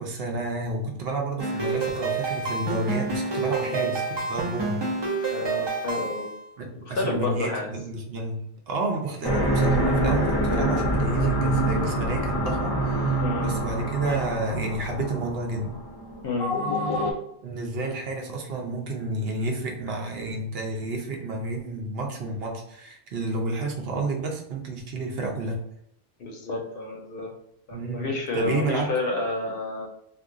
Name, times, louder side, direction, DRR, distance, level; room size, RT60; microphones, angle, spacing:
voice 1, 0.0-4.8 6.6-15.8 17.4-25.6 27.7-28.9, right 2 dB, 65° right, 1 dB, 0.8 m, -30 dB
sound 1, 1.4-6.4, right 4 dB, 35° right, 0.4 m, -28 dB
voice 2, 3.6-3.9 5.3-6.3 6.8-7.7 13.2-13.5 16.2-16.5 26.2-27.3 27.7-29.9, left 2 dB, 60° left, 1 dB, 0.7 m, -30 dB
sound 2, 9.2-17.1, right 1 dB, 40° left, 0.3 m, -26 dB
2.4 x 2.2 x 3.6 m, 0.77 s
omnidirectional pair, 1.1 m